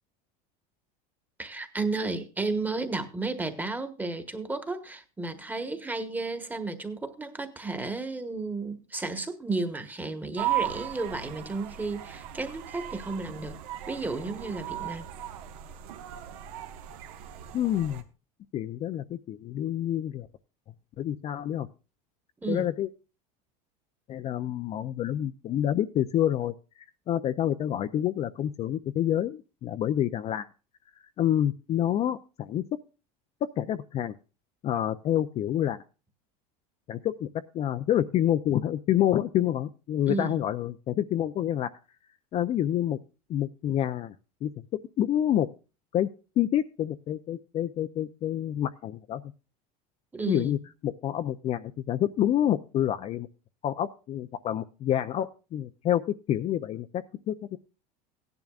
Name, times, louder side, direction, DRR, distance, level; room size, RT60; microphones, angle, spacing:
voice 1, 1.4-13.6 13.9-15.1 22.4-22.7 40.1-40.3 50.1-50.5, right 3 dB, 10° right, 1.3 m, -33 dB
sound 1, 10.4-18.0, right 12 dB, 80° right, 1.5 m, -36 dB
voice 2, 17.5-18.0 18.5-20.3 21.0-21.7 22.5-22.9 24.1-26.5 27.1-30.5 31.2-32.6 33.6-34.1 34.6-35.8 36.9-37.3 37.5-41.7 42.3-43.0 43.3-44.1 44.4-44.5 45.0-45.5 45.9-46.1 46.4-49.2 50.2-50.6 50.8-53.3 53.6-57.6, left 11 dB, 35° left, 0.5 m, -28 dB
16.5 x 10.5 x 2.4 m
supercardioid pair, 135°, 19 cm